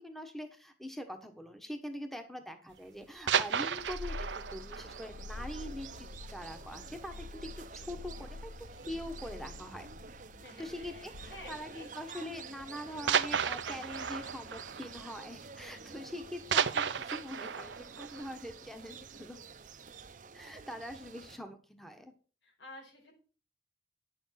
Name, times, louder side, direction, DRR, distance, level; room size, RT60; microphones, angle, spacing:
voice 1, 0.0-9.9 10.6-19.4 20.3-22.1, equal, ahead, 6 dB, 1.2 m, -43 dB
sound 1, 3.0-6.6 6.9-7.0 7.4-7.6 7.9-8.0 8.8-9.3 10.5-10.7 11.6-11.7 13.1-15.9 16.1-19.3 19.7-19.8, right 7 dB, 80° right, 0.7 m, -34 dB
Purr, 3.7-11.8, left 3 dB, 50° left, 0.4 m, -47 dB
sound 2, 3.7-21.4, right 5 dB, 45° right, 0.7 m, -50 dB
voice 2, 10.3-13.2 13.4-14.7 22.4-23.1, left 1 dB, 90° left, 1 dB, 5.2 m, -53 dB
10.0 x 7.1 x 5.8 m, 0.37 s
head